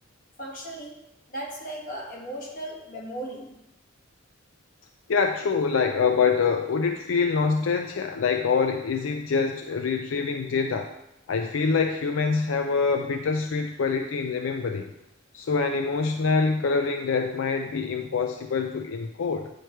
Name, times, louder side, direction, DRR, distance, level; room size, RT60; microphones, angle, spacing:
voice 1, 0.4-3.5, right 1 dB, 40° left, -2 dB, 1.6 m, -37 dB
voice 2, 5.1-10.9 11.3-14.9 15.3-19.5, left 5 dB, 80° left, 5 dB, 0.4 m, -25 dB
9.4 x 3.2 x 4.5 m, 0.87 s
head